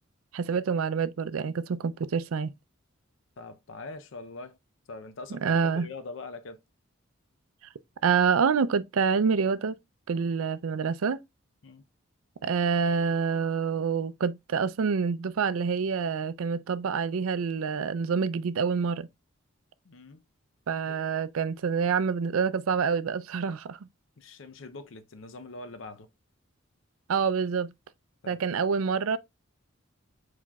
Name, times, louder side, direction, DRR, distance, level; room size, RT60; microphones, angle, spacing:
voice 1, 0.3-2.5 5.4-5.9 8.0-9.8 10.1-11.2 12.4-19.1 20.7-23.8 27.1-27.7 28.3-29.2, right 6 dB, 85° right, 0.4 m, -27 dB
voice 2, 3.4-4.6 4.9-6.6 11.6-11.8 19.8-20.2 20.9-21.0 24.2-26.1 28.2-28.4, left 3 dB, 65° left, 0.6 m, -43 dB
4.7 x 4.2 x 2.3 m
head